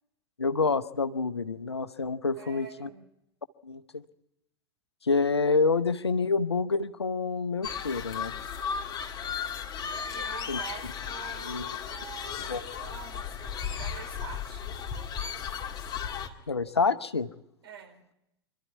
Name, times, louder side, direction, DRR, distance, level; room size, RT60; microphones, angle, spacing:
voice 1, 0.4-2.9 3.6-4.0 5.0-8.3 10.5-10.6 11.4-11.7 12.5-12.6 16.5-17.3, left 4 dB, 85° left, 12 dB, 0.9 m, -27 dB
voice 2, 2.4-3.1 10.1-14.7 17.6-18.1, right 7 dB, 70° right, 3 dB, 3.8 m, -46 dB
sound 1, 7.6-16.3, left 7 dB, 30° left, 2.3 m, -35 dB
25.5 x 12.5 x 9.4 m, 0.87 s
figure-of-eight pair, 90°, 13 cm